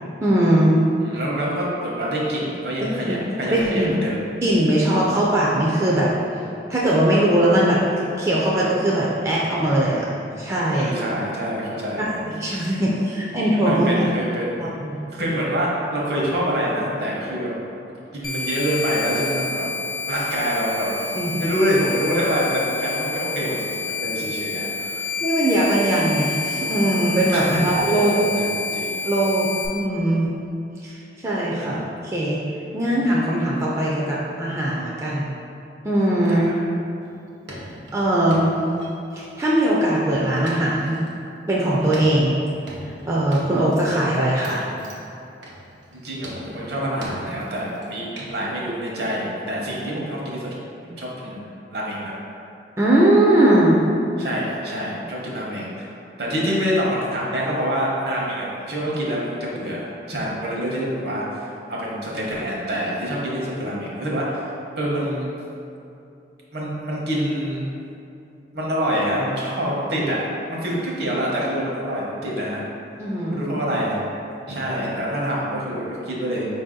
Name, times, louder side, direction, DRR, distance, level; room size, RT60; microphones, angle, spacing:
voice 1, 0.2-0.8 3.1-3.2 3.5-3.9 4.4-6.1 6.7-7.8 8.2-10.0 10.3-10.9 12.0-14.1 14.8-14.9 21.2-21.4 25.2-28.2 29.0-29.5 29.7-30.3 30.8-30.9 31.2-32.4 32.7-35.3 35.8-36.5 37.9-38.5 39.1-41.0 41.5-42.4 43.1-44.6 52.8-53.8 73.0-73.4, right 1 dB, 15° right, -6 dB, 0.3 m, -20 dB
voice 2, 1.0-4.2 10.7-12.2 12.7-12.9 13.7-14.6 15.1-17.5 18.1-19.7 20.1-20.9 21.4-25.1 27.3-29.0 31.6-31.8 36.2-36.5 45.9-50.5 50.8-52.1 54.2-55.9 56.2-65.3 66.5-67.6 68.5-70.2 70.5-72.6 73.3-74.0 74.5-76.5, equal, 60° right, -4 dB, 0.9 m, -26 dB
sound 1, 18.2-29.7, left 4 dB, 55° left, 0.5 m, -29 dB
sound 2, 37.1-37.2 37.5-39.3 39.8-41.1 41.8-43.8 44.1-44.2 44.4-45.1 45.4-46.0 46.2-47.9 48.2-48.4, equal, 90° right, 0.7 m, -39 dB
4.8 x 2.7 x 3.7 m, 2.7 s
head